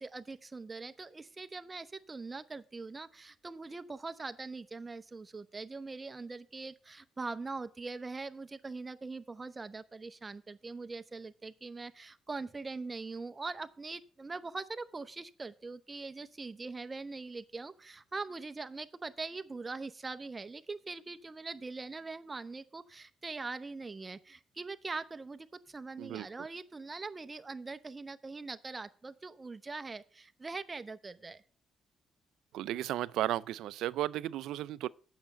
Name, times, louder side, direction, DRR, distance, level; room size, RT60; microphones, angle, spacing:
voice 1, 0.0-31.4, right 3 dB, 25° right, 0.8 m, -42 dB
voice 2, 32.5-34.9, right 13 dB, 85° right, 0.4 m, -34 dB
8.8 x 6.5 x 6.8 m
cardioid pair, 90°, 0 cm